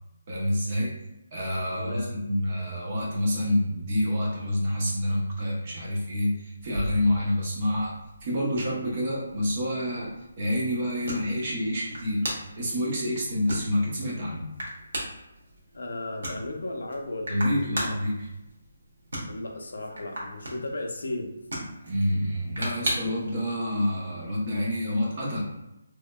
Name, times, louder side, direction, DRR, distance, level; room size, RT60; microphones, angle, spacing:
voice 1, 0.3-0.9 1.3-7.9 8.2-10.1 10.4-12.3 12.6-14.5 17.3-18.3 21.8-25.4, left 1 dB, 30° right, -4 dB, 0.8 m, -27 dB
voice 2, 1.8-2.1 15.7-18.0 19.3-21.4, left 2 dB, 80° left, 3 dB, 0.6 m, -35 dB
sound 1, 6.6-23.3, right 1 dB, 65° right, 1.2 m, -38 dB
3.5 x 3.1 x 2.2 m, 0.94 s
hypercardioid pair, 175°, 0 cm